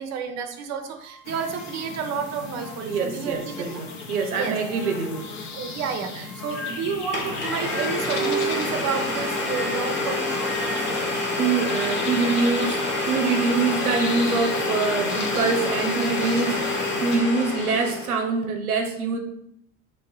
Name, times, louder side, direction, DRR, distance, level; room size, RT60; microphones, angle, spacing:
voice 1, 0.0-3.6 4.3-4.6 5.5-10.5, right 6 dB, 40° right, 6 dB, 0.7 m, -30 dB
sound 1, 0.8-4.1 4.6-8.3 9.1-12.1, left 2 dB, ahead, 0.4 m, -41 dB
sound 2, 1.2-17.2, left 4 dB, 40° left, 0.8 m, -37 dB
voice 2, 2.9-5.3 11.0-11.1 11.4-19.2, right 4 dB, 90° right, 3 dB, 0.6 m, -25 dB
Domestic sounds home sounds, 6.7-6.8 7.1-18.2, left 2 dB, 25° left, 1.1 m, -27 dB
3.1 x 2.7 x 4.5 m, 0.74 s
hypercardioid pair, 70°, 43 cm